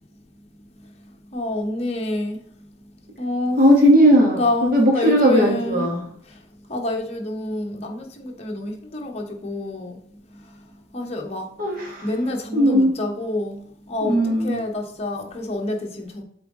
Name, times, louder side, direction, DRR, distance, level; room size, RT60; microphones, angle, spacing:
voice 1, 1.3-2.4 3.2-3.6 4.4-5.8 6.7-10.0 10.9-11.4 12.0-13.6 13.9-14.2 14.4-16.2, left 1 dB, 35° left, 0 dB, 1.0 m, -27 dB
voice 2, 3.6-6.1 11.6-12.1 12.5-12.9 14.0-14.6, equal, 50° right, -1 dB, 1.8 m, -17 dB
7.6 x 3.9 x 3.7 m, 0.65 s
head